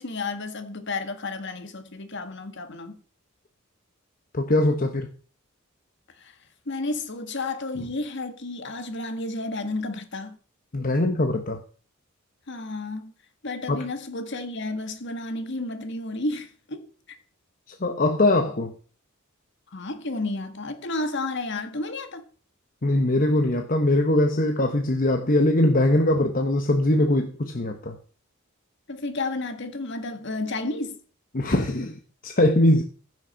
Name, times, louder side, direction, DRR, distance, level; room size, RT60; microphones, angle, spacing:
voice 1, 0.0-3.0 6.2-6.4 6.7-10.4 12.5-13.1 13.4-17.2 19.7-22.2 28.9-31.0, left 2 dB, 60° left, 1.8 m, -32 dB
voice 2, 4.3-5.1 10.7-11.6 13.7-13.8 17.7-18.7 22.8-28.0 31.3-32.8, left 1 dB, 45° left, 1.0 m, -22 dB
15.0 x 6.4 x 5.7 m
head